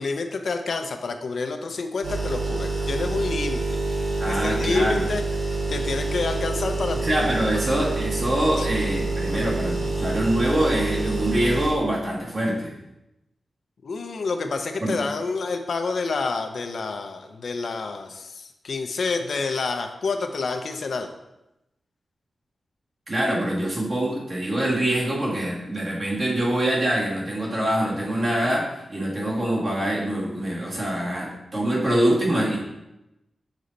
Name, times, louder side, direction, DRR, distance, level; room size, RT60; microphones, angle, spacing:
voice 1, 0.0-3.8 4.3-5.2 5.7-7.0 7.5-7.6 8.6-8.7 9.3-9.5 9.8-9.9 13.8-21.1, left 4 dB, 65° left, 6 dB, 0.5 m, -28 dB
sound 1, 2.0-11.7, right 3 dB, 75° right, 2.3 m, -27 dB
voice 2, 4.2-5.0 7.0-12.8 14.8-15.0 23.1-32.6, right 1 dB, 40° right, -5 dB, 1.9 m, -24 dB
6.6 x 4.1 x 3.9 m, 0.91 s
wide cardioid pair, 135°, 0 cm